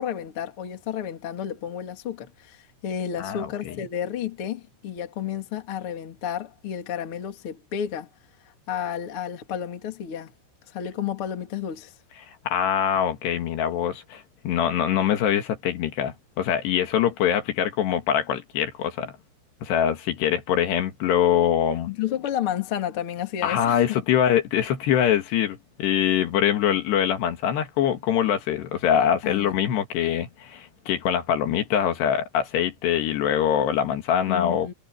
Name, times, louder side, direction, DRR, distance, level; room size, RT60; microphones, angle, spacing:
voice 1, 0.0-8.1 8.4-10.3 10.7-11.9 21.9-24.0 29.2-29.6 34.3-34.7, left 9 dB, 40° left, 2.3 m, -31 dB
voice 2, 3.2-3.8 12.5-19.1 19.6-21.9 23.4-34.7, left 9 dB, 65° left, 3.4 m, -24 dB
omnidirectional pair, 5.8 m